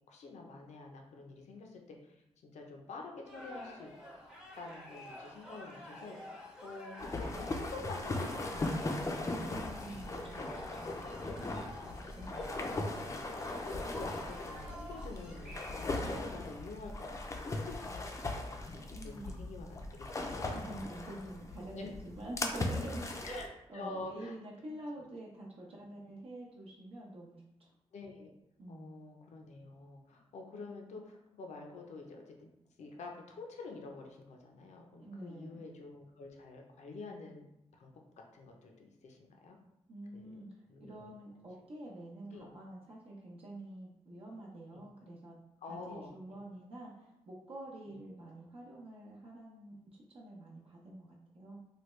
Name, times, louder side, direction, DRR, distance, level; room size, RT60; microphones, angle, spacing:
voice 1, 0.1-2.2 2.4-3.9 4.5-10.0 10.4-10.8 11.3-12.0 12.6-13.4 13.9-20.5 21.7-21.9 23.3-23.5 23.7-24.4 27.9-28.3 28.7-32.5 32.8-37.5 37.7-39.6 40.1-40.4 40.7-41.1 42.3-42.5 44.7-44.9 45.6-46.4, left 3 dB, 85° left, 1 dB, 0.5 m, -48 dB
sound 1, 3.3-16.0, left 1 dB, 5° right, 0.7 m, -50 dB
sound 2, 7.0-23.5, left 2 dB, 25° left, 0.4 m, -38 dB
voice 2, 9.5-10.9 12.2-12.4 18.9-19.6 20.5-27.7 28.6-28.9 35.0-35.6 39.9-40.5 40.8-45.4 45.7-51.6, right 1 dB, 55° right, -4 dB, 0.7 m, -47 dB
3.3 x 2.2 x 3.1 m, 0.85 s
wide cardioid pair, 110°, 12 cm